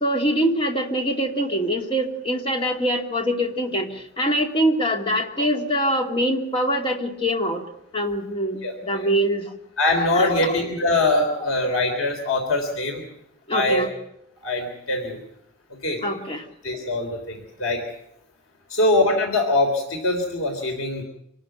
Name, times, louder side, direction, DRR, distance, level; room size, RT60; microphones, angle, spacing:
voice 1, 0.0-7.6 7.9-9.5 10.1-10.7 11.4-11.5 13.5-13.9 16.0-16.4, equal, 25° left, 2 dB, 2.6 m, -24 dB
voice 2, 9.8-13.0 13.5-13.9 14.4-15.2 15.8-16.0 16.6-17.8 18.7-21.0, left 2 dB, 90° left, 3 dB, 3.5 m, -22 dB
25.5 x 13.0 x 9.1 m, 0.75 s
head